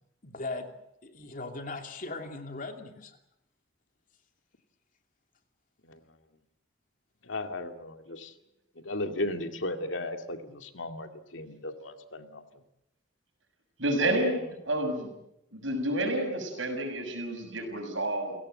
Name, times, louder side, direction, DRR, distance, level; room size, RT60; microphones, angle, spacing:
voice 1, 0.2-0.7 1.0-3.2, left 3 dB, 45° left, 5 dB, 2.7 m, -38 dB
voice 2, 7.2-8.3 8.8-12.6, left 1 dB, 85° left, 6 dB, 2.3 m, -36 dB
voice 3, 13.8-15.1 15.5-18.4, right 1 dB, 90° right, 4 dB, 6.8 m, -29 dB
29.5 x 17.0 x 7.8 m, 0.82 s
head